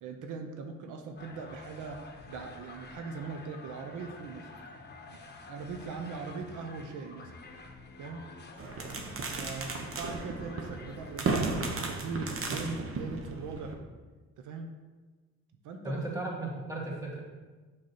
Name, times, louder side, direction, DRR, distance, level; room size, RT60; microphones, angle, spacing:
voice 1, 0.0-4.5 5.1-7.3 8.0-8.3 9.4-13.7 14.4-14.7 15.6-16.2, right 4 dB, 80° right, 5 dB, 0.8 m, -40 dB
sound 1, 1.2-11.3, left 3 dB, 35° left, 1.0 m, -49 dB
sound 2, 8.6-13.8, right 3 dB, 45° right, 1.0 m, -34 dB
voice 2, 15.8-17.2, right 2 dB, 10° right, -3 dB, 2.1 m, -35 dB
6.4 x 5.9 x 4.2 m, 1.3 s
cardioid pair, 90°, 30 cm